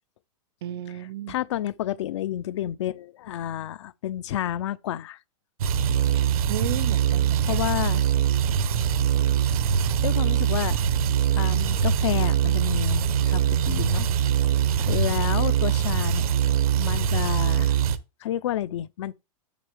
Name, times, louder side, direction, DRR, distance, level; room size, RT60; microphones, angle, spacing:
voice 1, 0.6-1.3 6.1-7.7 14.7-14.9, right 13 dB, 40° right, 0.4 m, -34 dB
voice 2, 1.3-5.2 7.5-8.0 10.0-10.8 11.3-14.1 14.9-16.3 16.8-17.7 18.2-19.1, left 12 dB, 50° left, 0.5 m, -30 dB
sound 1, 5.6-18.0, right 9 dB, 75° right, 1.0 m, -23 dB
7.3 x 6.5 x 3.4 m
supercardioid pair, 170°, 19 cm